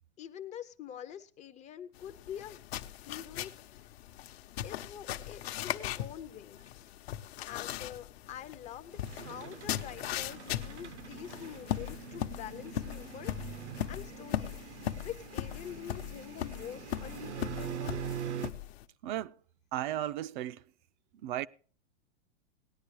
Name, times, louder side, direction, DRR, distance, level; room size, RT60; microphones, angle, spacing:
voice 1, 0.2-2.7 3.1-3.9 4.6-6.6 7.4-13.6 13.9-14.6 15.0-18.0, left 9 dB, 20° left, 0.5 m, -46 dB
sound 1, 1.9-18.8, left 12 dB, 65° left, 0.8 m, -39 dB
sound 2, 8.9-18.5, right 8 dB, 85° right, 1.0 m, -43 dB
voice 2, 19.0-19.3 19.7-20.6 21.2-21.5, right 12 dB, 50° right, 0.4 m, -34 dB
18.5 x 10.0 x 3.1 m
hypercardioid pair, 130°, 33 cm